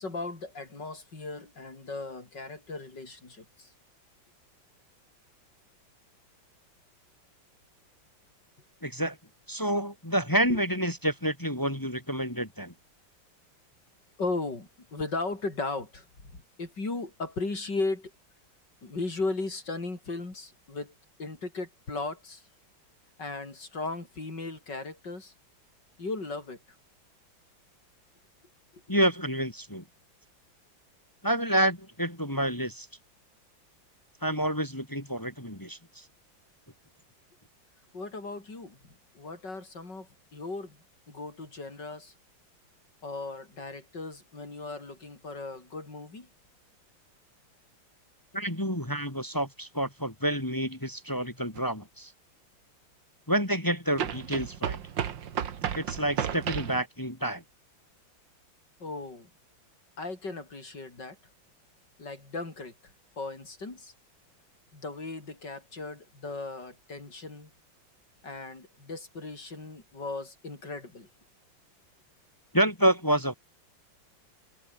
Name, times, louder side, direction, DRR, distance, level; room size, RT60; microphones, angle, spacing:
voice 1, 0.0-3.7 10.5-10.6 14.2-18.1 18.8-20.9 21.2-22.4 23.2-25.3 26.0-26.6 28.7-29.0 37.9-38.8 39.1-40.8 41.1-42.1 43.0-46.3 58.8-59.3 60.0-61.2 62.0-62.8 63.2-63.9 64.7-67.5 68.2-71.1, left 3 dB, 60° left, 6.1 m, -37 dB
voice 2, 8.8-9.2 9.5-12.7 28.9-29.8 31.2-32.9 34.2-36.0 48.3-52.1 53.3-54.8 55.7-57.4 72.5-73.3, right 1 dB, 10° left, 2.8 m, -28 dB
sound 1, 51.5-51.6 54.0-56.8, right 8 dB, 70° right, 2.1 m, -33 dB
omnidirectional pair, 2.1 m